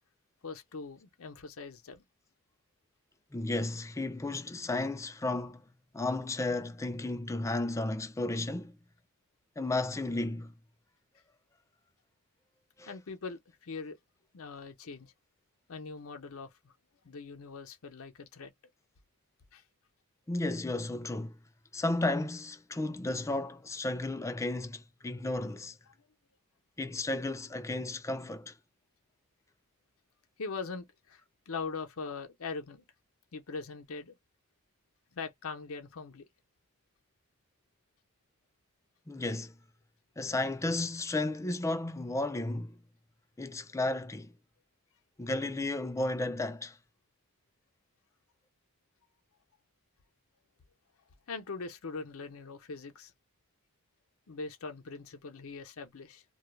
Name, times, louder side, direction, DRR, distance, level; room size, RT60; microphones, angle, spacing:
voice 1, 0.4-2.0 12.9-14.0 14.3-15.1 15.7-16.7 17.0-18.5 19.5-19.6 30.4-32.8 33.3-34.2 35.1-36.3 51.3-53.1 54.3-56.2, left 4 dB, 75° left, 0.6 m, -41 dB
voice 2, 3.3-5.6 5.9-8.8 9.6-10.5 12.8-12.9 20.3-21.4 21.7-25.8 26.8-28.6 39.1-39.5 40.2-42.8 43.4-44.3 45.2-46.8, left 2 dB, 15° left, 0.3 m, -33 dB
2.3 x 2.0 x 3.0 m
head